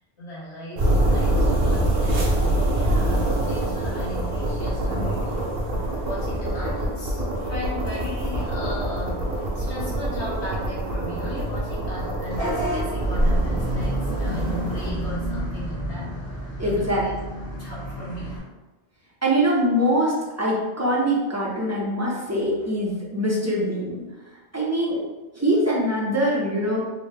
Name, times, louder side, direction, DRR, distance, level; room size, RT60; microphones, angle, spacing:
voice 1, 0.2-5.5 6.0-16.1 16.6-17.1 17.6-18.4, left 1 dB, 80° left, -7 dB, 1.5 m, -37 dB
sound 1, 0.8-14.9, right 1 dB, 60° right, 0.9 m, -25 dB
sound 2, 2.7-16.8, equal, 50° left, 1.2 m, -37 dB
Vehicle horn car horn honking / Bus, 12.3-18.4, right 1 dB, 35° left, 1.1 m, -30 dB
voice 2, 16.6-17.0 19.2-24.0 24.5-25.0 25.4-26.8, equal, 20° right, -5 dB, 0.5 m, -23 dB
3.7 x 2.1 x 3.2 m, 1.2 s
omnidirectional pair, 1.1 m